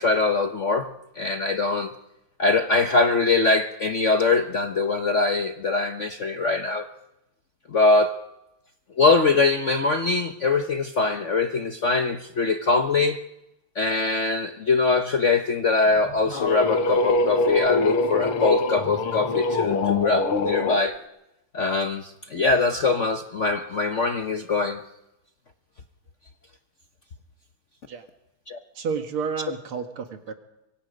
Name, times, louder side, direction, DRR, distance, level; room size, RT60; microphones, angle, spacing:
voice 1, 0.0-1.9 2.4-6.9 7.7-8.2 9.0-13.2 13.7-21.0 21.5-24.8 28.5-28.6, left 3 dB, 50° left, 7 dB, 0.9 m, -22 dB
sound 1, 15.9-20.8, left 2 dB, 90° left, 2.4 m, -24 dB
voice 2, 28.8-30.3, right 6 dB, 75° right, 7 dB, 2.6 m, -30 dB
25.0 x 24.0 x 5.2 m, 0.90 s
omnidirectional pair, 2.4 m